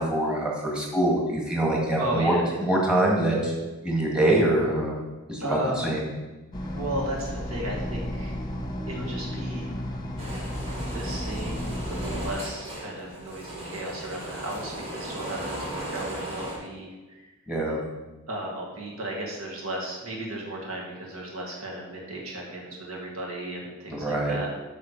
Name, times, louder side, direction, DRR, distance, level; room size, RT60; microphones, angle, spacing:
voice 1, 0.0-2.4 2.7-3.5 3.8-5.0 5.3-6.1 17.5-17.8 23.9-24.4, right 1 dB, 5° right, -2 dB, 1.8 m, -24 dB
voice 2, 1.9-2.6 5.4-5.9 6.7-8.4 8.9-9.7 10.9-17.3 18.3-24.5, right 1 dB, 75° right, -2 dB, 1.9 m, -35 dB
sound 1, 6.5-12.3, left 1 dB, 20° left, 1.0 m, -33 dB
sound 2, 10.2-16.6, right 1 dB, 30° right, 2.5 m, -37 dB
8.6 x 5.7 x 4.7 m, 1.2 s
head